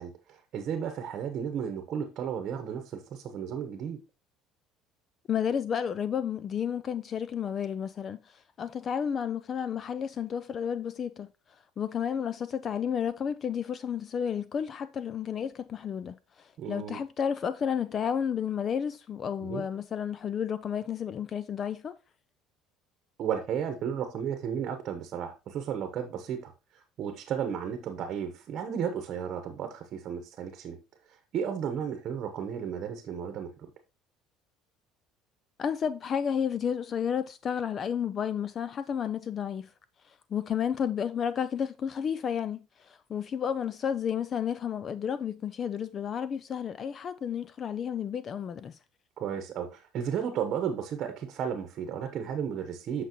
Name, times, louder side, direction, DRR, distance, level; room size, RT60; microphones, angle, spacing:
voice 1, 0.0-4.0 16.6-17.0 19.4-19.6 23.2-30.8 31.1-33.5 49.2-53.0, right 8 dB, 45° right, 1.0 m, -34 dB
voice 2, 5.3-11.3 11.8-22.0 35.6-39.7 40.1-48.8, left 8 dB, 30° left, 0.3 m, -32 dB
8.1 x 5.8 x 3.0 m
cardioid pair, 155°, 0 cm